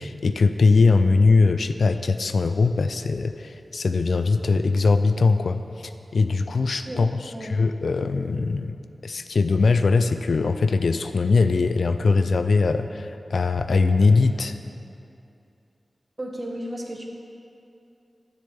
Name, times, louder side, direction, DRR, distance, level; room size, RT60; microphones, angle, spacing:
voice 1, 0.0-5.6 6.1-7.1 7.4-8.8 9.0-14.5, left 4 dB, 80° left, 9 dB, 0.4 m, -21 dB
voice 2, 16.2-17.0, right 1 dB, 35° right, 0 dB, 1.6 m, -33 dB
10.0 x 6.7 x 7.1 m, 2.7 s
cardioid pair, 45°, 0 cm